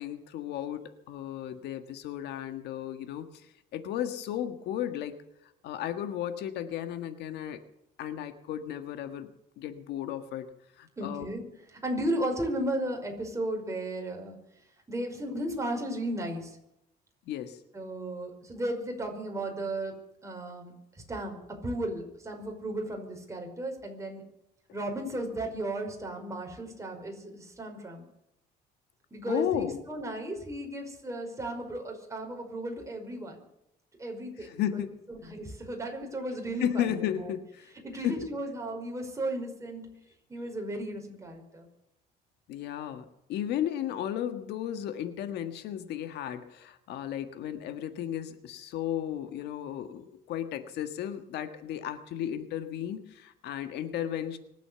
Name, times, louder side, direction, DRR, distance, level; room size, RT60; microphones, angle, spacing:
voice 1, 0.0-5.1 5.4-7.6 8.0-9.3 9.6-10.5 10.8-11.2 17.3-17.6 29.3-29.8 34.4-35.0 36.6-37.7 38.0-38.2 42.5-54.4, left 10 dB, 80° left, 9 dB, 1.6 m, -34 dB
voice 2, 11.0-11.4 11.7-14.4 14.9-16.6 17.7-19.9 20.2-24.2 24.7-28.0 29.1-33.4 34.0-34.8 35.1-37.3 37.8-39.9 40.3-41.7, right 1 dB, 20° right, 2 dB, 5.2 m, -35 dB
24.5 x 8.4 x 7.0 m, 0.83 s
cardioid pair, 110°, 17 cm